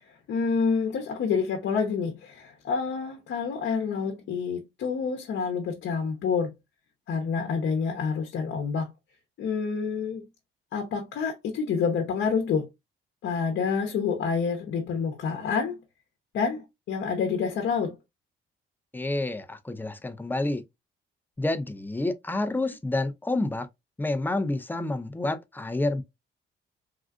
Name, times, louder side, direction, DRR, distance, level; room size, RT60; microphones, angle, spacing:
voice 1, 0.0-6.5 7.1-8.9 9.4-10.2 10.7-12.7 13.2-15.8 16.3-18.0, left 5 dB, 70° left, 0.8 m, -28 dB
voice 2, 18.9-20.6 21.4-23.7 24.0-26.0, left 2 dB, 10° left, 0.5 m, -29 dB
3.6 x 2.3 x 2.3 m
cardioid pair, 90°, 20 cm